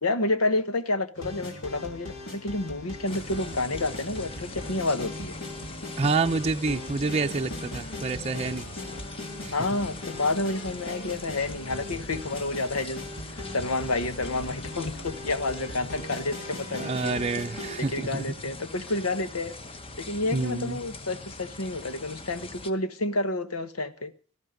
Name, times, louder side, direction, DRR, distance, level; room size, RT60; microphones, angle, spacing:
voice 1, 0.0-5.4 8.9-9.0 9.5-17.2 17.8-19.5 20.0-24.1, left 2 dB, 85° left, 1.3 m, -29 dB
sound 1, 1.1-17.8, left 1 dB, 65° left, 3.9 m, -39 dB
sound 2, 3.0-22.7, left 2 dB, 25° left, 1.1 m, -42 dB
voice 2, 6.0-8.6 9.4-9.5 16.8-18.3 20.3-20.8, right 3 dB, 30° right, 0.6 m, -28 dB
18.5 x 13.0 x 5.2 m
head